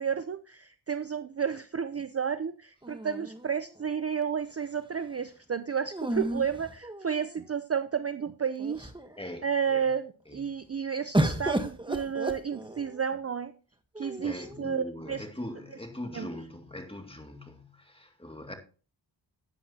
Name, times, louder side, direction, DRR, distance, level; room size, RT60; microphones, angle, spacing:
voice 1, 0.0-8.9 9.4-13.5 14.0-15.3 16.1-16.3, right 7 dB, 30° right, 0.6 m, -32 dB
sound 1, 2.8-3.9 5.9-7.4 8.2-8.3 8.6-9.2 11.1-13.0 13.9-14.6, right 1 dB, 10° right, 1.2 m, -32 dB
voice 2, 9.2-9.9 10.3-10.4 14.0-18.5, left 1 dB, 10° left, 2.2 m, -41 dB
11.5 x 9.3 x 2.8 m
cardioid pair, 65°, 46 cm